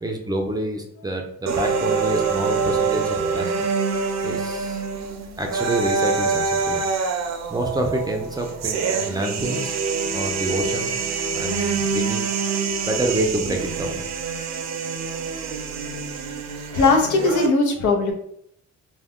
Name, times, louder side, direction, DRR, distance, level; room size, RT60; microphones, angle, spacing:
voice 1, 0.0-3.5 4.2-4.8 5.4-6.8 7.5-9.8 10.1-10.9 11.3-12.3 12.9-14.0, right 1 dB, 15° right, 2 dB, 0.5 m, -27 dB
sound 1, 1.5-17.5, right 5 dB, 65° right, 0.5 m, -25 dB
voice 2, 16.7-18.1, left 3 dB, 75° left, 3 dB, 0.7 m, -19 dB
2.3 x 2.2 x 3.5 m, 0.70 s
cardioid pair, 90°, 30 cm